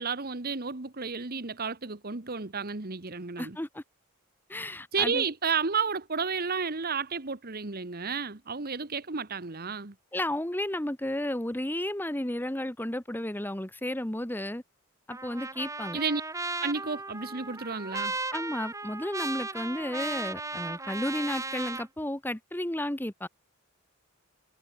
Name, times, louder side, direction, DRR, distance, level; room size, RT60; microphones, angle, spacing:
voice 1, 0.0-3.6 4.9-9.9 15.9-16.2 16.6-18.1, right 5 dB, 45° right, 1.4 m, -32 dB
voice 2, 3.4-3.8 4.5-5.2 10.1-14.6 15.1-16.0 18.3-23.3, left 1 dB, 10° left, 1.1 m, -33 dB
Trumpet, 15.1-21.9, right 3 dB, 15° right, 2.3 m, -36 dB
head